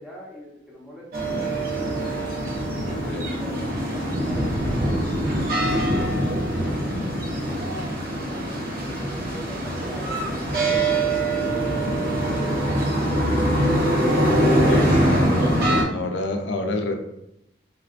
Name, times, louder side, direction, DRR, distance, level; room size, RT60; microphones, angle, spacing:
voice 1, 0.0-2.2 3.2-11.4, equal, 5° right, -5 dB, 0.6 m, -43 dB
sound 1, 1.1-15.8, right 1 dB, 55° right, 0.7 m, -23 dB
voice 2, 2.9-3.3 14.6-15.6 15.9-16.9, left 2 dB, 85° left, 5 dB, 0.4 m, -29 dB
3.6 x 2.3 x 2.4 m, 0.83 s
head